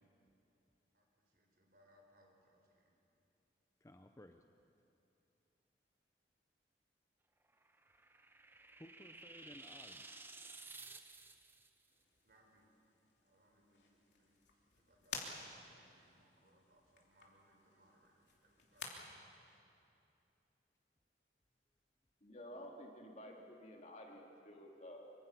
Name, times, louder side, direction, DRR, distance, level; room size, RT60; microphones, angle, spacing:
voice 1, 0.9-2.9 12.2-12.7 13.2-19.6, equal, 60° right, 1 dB, 4.2 m, -71 dB
voice 2, 3.8-4.4 8.8-10.3, left 1 dB, 15° left, 6 dB, 0.6 m, -58 dB
sound 1, 7.5-11.7, right 3 dB, 15° right, 0.8 m, -54 dB
sound 2, 11.9-18.9, left 5 dB, 90° left, 2.9 m, -53 dB
voice 3, 22.2-25.1, equal, 40° left, 0 dB, 2.7 m, -52 dB
25.5 x 24.5 x 5.8 m, 2.7 s
head